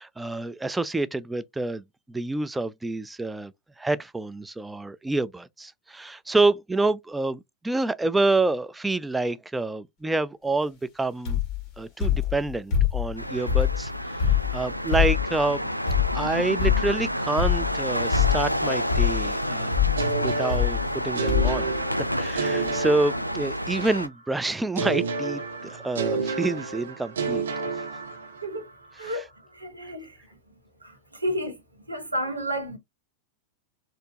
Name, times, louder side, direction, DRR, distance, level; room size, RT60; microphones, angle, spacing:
voice 1, 0.0-11.4 11.8-15.7 16.1-19.7 20.2-21.7 22.0-27.4 28.9-29.3, right 2 dB, 10° right, 0.3 m, -28 dB
sound 1, 11.3-11.6 12.0-13.1 13.5-15.4 15.9-16.3 16.6-17.0 17.4-17.8 18.1-18.6 18.9-19.3 19.7-20.0 20.5-21.0 21.3-21.6 22.4-22.5 22.7-22.8, left 9 dB, 35° left, 2.1 m, -24 dB
sound 2, 13.2-24.1, equal, 90° left, 0.4 m, -29 dB
sound 3, 20.0-23.9 24.7-28.6, right 4 dB, 65° right, 0.8 m, -30 dB
voice 2, 29.5-30.2 31.2-31.6 31.9-32.8, equal, 85° right, 1.2 m, -30 dB
4.3 x 2.5 x 2.8 m
figure-of-eight pair, 90°, 0 cm